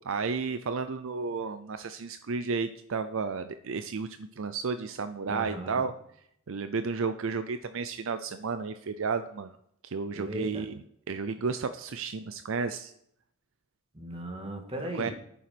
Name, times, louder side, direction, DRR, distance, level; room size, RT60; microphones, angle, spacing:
voice 1, 0.0-5.9 6.5-9.6 9.8-10.8 11.1-12.9 15.0-15.1, right 4 dB, 65° right, 10 dB, 0.5 m, -32 dB
voice 2, 5.3-5.9 10.1-10.6 13.9-15.1, right 1 dB, 25° right, 2 dB, 2.1 m, -37 dB
9.3 x 7.1 x 6.0 m, 0.70 s
head